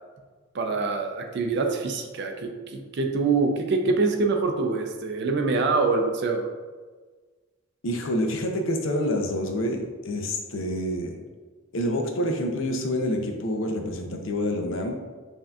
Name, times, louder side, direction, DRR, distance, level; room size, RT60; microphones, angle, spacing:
voice 1, 0.5-6.5, right 3 dB, 50° right, 4 dB, 0.4 m, -25 dB
voice 2, 7.8-11.2 11.7-15.0, left 1 dB, 60° left, 3 dB, 0.5 m, -27 dB
5.5 x 2.7 x 2.3 m, 1.4 s
head